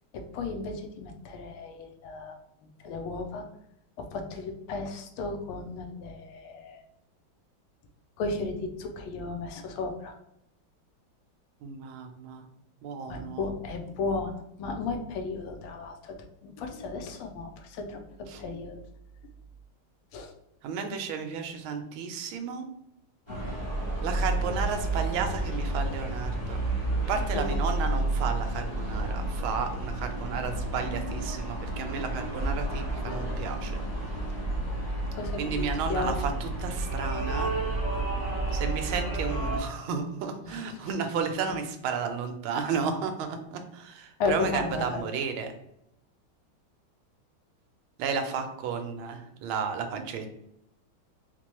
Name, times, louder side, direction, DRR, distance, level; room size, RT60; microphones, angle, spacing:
voice 1, 0.1-2.4 2.8-3.4 4.0-6.8 8.2-10.2 13.1-14.3 14.6-16.1 16.4-18.0 18.4-18.8 20.1-20.3 23.3-23.4 27.3-27.7 35.2-36.1 40.4-40.6 44.2-45.0, left 3 dB, 80° left, 5 dB, 1.4 m, -34 dB
voice 2, 11.6-12.4 12.8-13.5 18.3-18.4 20.6-22.7 24.0-26.6 27.1-33.8 35.4-37.5 38.5-45.5 48.0-50.4, right 6 dB, 80° right, 6 dB, 1.4 m, -33 dB
sound 1, 23.3-39.6, right 2 dB, 35° left, 0.4 m, -31 dB
4.2 x 2.2 x 3.0 m, 0.78 s
omnidirectional pair, 2.3 m